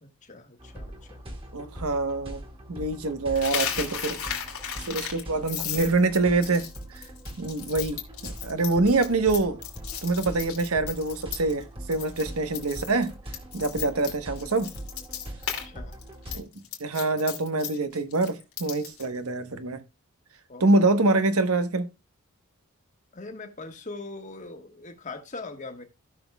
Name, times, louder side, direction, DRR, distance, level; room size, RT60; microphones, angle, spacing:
voice 1, 0.0-1.2 15.6-15.9 20.5-20.9 23.1-25.8, left 3 dB, 35° left, 1.4 m, -41 dB
sound 1, 0.6-16.4, right 1 dB, 25° right, 1.9 m, -42 dB
voice 2, 1.5-2.4 2.7-4.2 4.9-7.0 7.4-9.6 10.0-13.1 13.5-14.7 16.3-16.5 16.8-19.8 20.6-21.9, right 3 dB, 85° right, 1.1 m, -25 dB
Coin (dropping), 3.3-11.6 11.9-12.2 12.5-15.6 15.9-19.0, left 9 dB, 80° left, 2.5 m, -35 dB
16.0 x 6.2 x 2.3 m
head